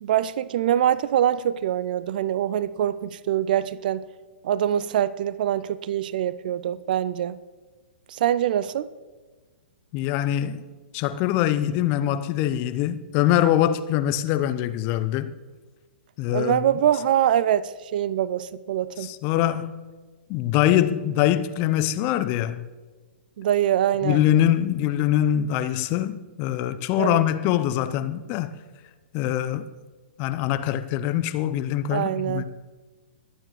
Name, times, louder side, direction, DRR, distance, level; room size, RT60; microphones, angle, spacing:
voice 1, 0.0-4.0 4.4-7.4 8.1-8.9 16.3-19.1 23.4-24.2 27.0-27.2 31.9-32.4, right 10 dB, 50° right, 0.4 m, -24 dB
voice 2, 9.9-10.6 10.9-15.3 16.2-16.6 19.0-19.7 20.3-22.7 24.0-28.5 29.1-29.7 30.2-32.5, left 12 dB, 30° left, 0.6 m, -23 dB
22.0 x 9.0 x 3.1 m
figure-of-eight pair, 115°, 6 cm